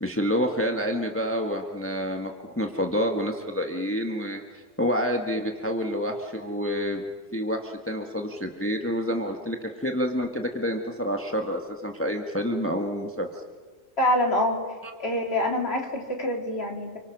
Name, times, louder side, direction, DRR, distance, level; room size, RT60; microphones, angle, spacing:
voice 1, 0.0-7.0 7.3-13.3, equal, 10° left, 3 dB, 1.6 m, -28 dB
voice 2, 14.0-14.6 15.0-17.0, left 1 dB, 50° left, 1 dB, 3.6 m, -25 dB
30.0 x 24.5 x 6.3 m, 1.5 s
omnidirectional pair, 1.4 m